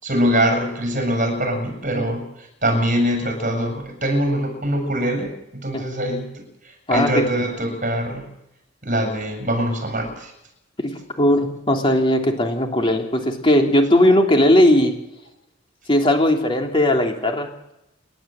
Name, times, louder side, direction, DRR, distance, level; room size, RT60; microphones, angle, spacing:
voice 1, 0.0-8.3 8.8-10.3, equal, 40° right, 4 dB, 7.2 m, -23 dB
voice 2, 6.9-7.2 10.8-14.9 15.9-17.5, left 1 dB, 25° left, 2 dB, 3.2 m, -18 dB
30.0 x 12.0 x 7.7 m, 0.85 s
head